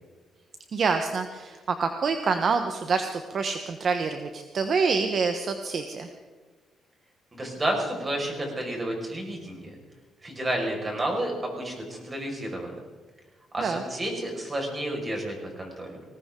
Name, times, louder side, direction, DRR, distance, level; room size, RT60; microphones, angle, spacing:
voice 1, 0.7-6.1 13.6-13.8, right 5 dB, 50° right, 7 dB, 1.1 m, -26 dB
voice 2, 7.3-9.7 10.2-12.8 13.5-16.0, right 1 dB, 25° right, 1 dB, 5.3 m, -31 dB
20.0 x 18.0 x 3.8 m, 1.4 s
cardioid pair, 90°, 0 cm